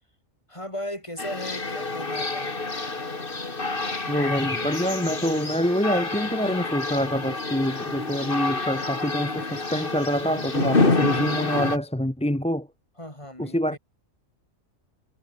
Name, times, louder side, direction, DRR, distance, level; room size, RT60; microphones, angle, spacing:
voice 1, 0.5-2.6 12.9-13.8, left 1 dB, 20° left, 6.8 m, -37 dB
sound 1, 1.2-11.8, left 3 dB, 40° left, 2.6 m, -28 dB
voice 2, 4.1-12.7 13.4-13.8, equal, 5° left, 1.0 m, -26 dB
omnidirectional pair, 1.4 m